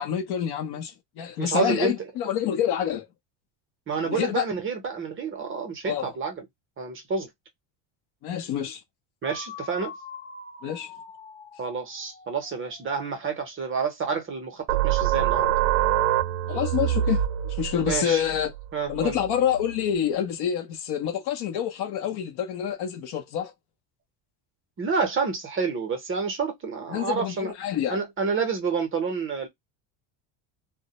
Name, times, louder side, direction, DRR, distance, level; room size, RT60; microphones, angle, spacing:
voice 1, 0.0-3.1 4.0-4.5 5.8-6.1 8.2-8.8 10.6-10.9 16.5-18.5 18.9-23.5 26.9-28.0, left 9 dB, 50° left, 0.7 m, -27 dB
voice 2, 1.4-1.9 3.9-6.4 6.8-7.3 9.2-9.9 11.6-15.5 17.9-18.2 18.7-19.2 24.8-27.5 27.9-29.5, right 5 dB, 25° right, 0.7 m, -29 dB
sound 1, 9.2-13.1, left 4 dB, 15° left, 0.6 m, -43 dB
sound 2, 14.7-20.0, right 12 dB, 65° right, 0.5 m, -26 dB
2.1 x 2.0 x 2.8 m
cardioid pair, 135°, 49 cm